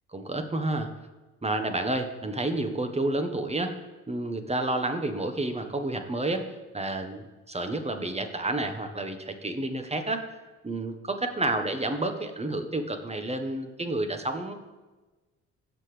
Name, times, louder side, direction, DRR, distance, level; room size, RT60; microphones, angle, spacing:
voice 1, 0.1-0.9 1.4-3.8 4.1-10.3 10.6-14.5, right 2 dB, 15° right, 6 dB, 1.3 m, -30 dB
16.0 x 5.9 x 3.4 m, 1.2 s
hypercardioid pair, 50°, 36 cm